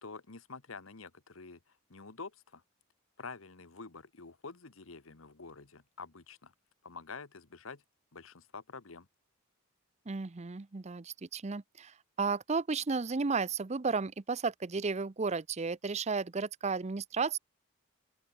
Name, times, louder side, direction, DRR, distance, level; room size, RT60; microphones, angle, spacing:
voice 1, 0.0-2.6 3.2-6.5 6.8-7.8 8.1-9.1, left 4 dB, 80° left, 1.4 m, -48 dB
voice 2, 10.1-17.4, right 4 dB, 35° right, 0.6 m, -33 dB
open air
head